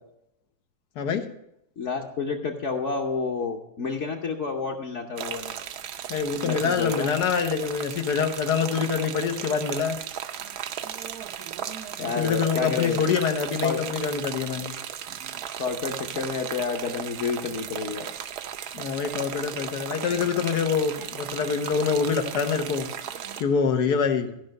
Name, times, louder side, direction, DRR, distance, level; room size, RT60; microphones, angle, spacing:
voice 1, 1.8-5.5 6.4-7.1 12.0-13.1 13.6-13.8 15.6-18.1, left 4 dB, 55° left, 0 dB, 1.1 m, -29 dB
sound 1, 5.2-23.4, right 9 dB, 80° right, 1.2 m, -36 dB
voice 2, 6.1-10.0 12.2-14.7 18.7-22.9 23.4-24.3, left 6 dB, 85° left, 5 dB, 1.5 m, -25 dB
14.0 x 5.4 x 6.4 m, 0.80 s
omnidirectional pair, 1.7 m